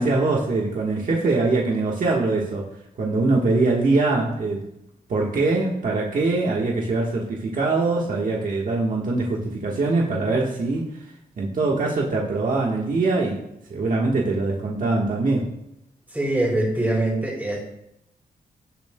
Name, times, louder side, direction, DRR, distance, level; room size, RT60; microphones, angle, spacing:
voice 1, 0.0-2.7 3.0-4.6 5.1-11.1 11.4-13.4 13.7-15.5, right 3 dB, 55° right, -3 dB, 1.5 m, -23 dB
voice 2, 16.1-17.6, right 1 dB, 10° right, -4 dB, 4.2 m, -23 dB
17.0 x 7.2 x 2.3 m, 0.80 s
wide cardioid pair, 140°, 16 cm